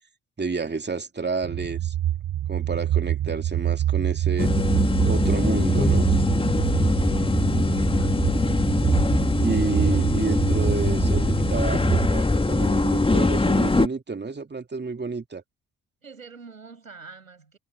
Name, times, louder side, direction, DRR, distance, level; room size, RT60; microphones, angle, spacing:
voice 1, 0.4-1.9 2.5-4.5 5.0-6.1 9.4-15.4, right 4 dB, 25° right, 2.6 m, -30 dB
sound 1, 1.4-12.1, right 12 dB, 50° right, 1.4 m, -26 dB
sound 2, 4.4-13.9, left 2 dB, 15° left, 1.8 m, -22 dB
voice 2, 6.9-8.3 16.0-17.6, right 5 dB, 85° right, 8.0 m, -47 dB
figure-of-eight pair, 45°, 40 cm